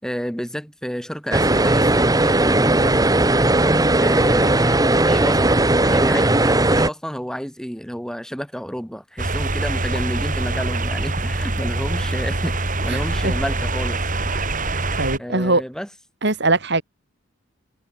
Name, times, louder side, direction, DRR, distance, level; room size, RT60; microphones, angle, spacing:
voice 1, 0.0-3.6 4.0-5.5 5.8-14.0 14.2-14.4 15.2-15.9, equal, 5° left, 3.5 m, -30 dB
sound 1, 1.3-6.9, right 2 dB, 20° right, 1.6 m, -17 dB
sound 2, 9.2-15.2, right 2 dB, 40° right, 3.8 m, -24 dB
voice 2, 12.9-13.3 15.0-15.6 16.2-16.8, right 2 dB, 55° right, 5.1 m, -21 dB
head